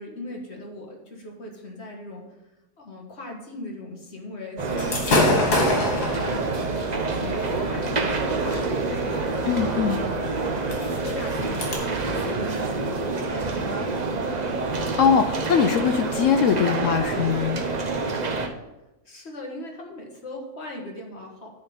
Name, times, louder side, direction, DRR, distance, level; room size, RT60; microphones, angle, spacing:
voice 1, 0.0-2.3 2.8-6.6 6.9-14.2 18.5-18.7 19.0-21.5, left 1 dB, 45° left, 0 dB, 1.7 m, -39 dB
sound 1, 4.6-18.5, right 3 dB, 35° right, 0.7 m, -27 dB
Gunshot gunfire / Fireworks, 4.8-11.8, left 1 dB, 90° left, 2.6 m, -27 dB
voice 2, 9.5-10.0 15.0-17.6, left 7 dB, 65° left, 8 dB, 0.8 m, -21 dB
9.6 x 3.9 x 7.1 m, 0.98 s
omnidirectional pair, 1.6 m